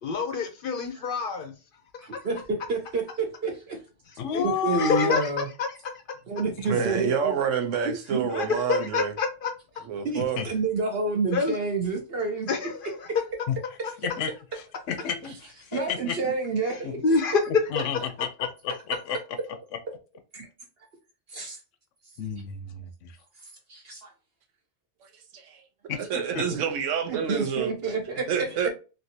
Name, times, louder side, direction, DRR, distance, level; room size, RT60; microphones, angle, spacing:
voice 1, 0.0-1.5 2.0-2.1 4.3-4.5 4.8-5.3 5.6-5.8 8.3-9.5 11.3-11.6 12.5-13.1 16.7-17.5, left 4 dB, 55° left, 0.7 m, -27 dB
voice 2, 2.0-2.4 2.7-3.8 4.4-5.5 6.3-7.3 7.8-8.3 10.0-12.5 15.7-17.0 20.3-20.5 21.3-21.6 23.7-24.1 26.4-26.6 27.1-28.3, right 4 dB, 55° right, 0.9 m, -29 dB
voice 3, 4.2-5.1 6.7-6.9 10.4-10.5 13.5-13.6 14.0-14.3 14.5-16.3 16.8-17.0 17.7-19.2 22.2-23.1 25.9-26.4, left 7 dB, 75° left, 1.0 m, -31 dB
voice 4, 6.7-9.1 9.9-10.4 25.3-25.6 26.1-27.7 28.3-28.7, right 7 dB, 80° right, 1.0 m, -28 dB
3.2 x 2.6 x 2.7 m
omnidirectional pair, 1.3 m